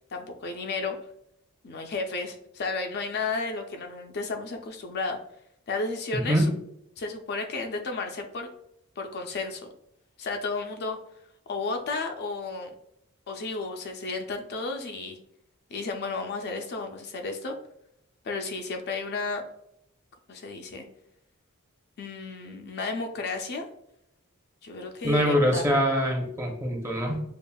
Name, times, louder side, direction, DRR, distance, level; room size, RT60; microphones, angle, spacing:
voice 1, 0.1-1.0 1.6-5.2 5.7-6.5 7.0-8.5 9.0-9.7 10.2-11.0 11.5-12.7 13.3-15.2 15.7-17.5 18.2-19.4 20.3-20.9 22.0-23.7 24.6-25.7, left 3 dB, 50° left, 4 dB, 0.4 m, -33 dB
voice 2, 6.1-6.5 25.0-27.2, equal, 15° right, 0 dB, 0.7 m, -24 dB
6.9 x 2.4 x 2.2 m, 0.77 s
head